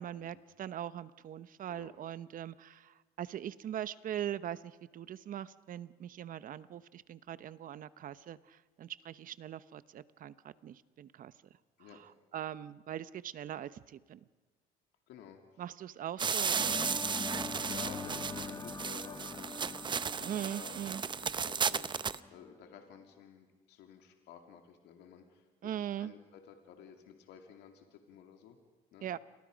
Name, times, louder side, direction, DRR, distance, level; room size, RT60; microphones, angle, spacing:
voice 1, 0.0-11.3 12.3-14.2 15.6-16.9 20.2-21.0 25.6-26.1 29.0-29.2, right 10 dB, 55° right, 15 dB, 0.9 m, -41 dB
voice 2, 15.1-15.7 17.4-19.6 20.2-28.6 28.9-29.1, left 7 dB, 85° left, 4 dB, 2.6 m, -53 dB
sound 1, 16.2-22.2, right 6 dB, 30° right, 0.7 m, -34 dB
sound 2, 16.6-22.5, left 4 dB, 20° left, 1.6 m, -43 dB
29.0 x 22.5 x 5.2 m, 1.3 s
cardioid pair, 110°, 17 cm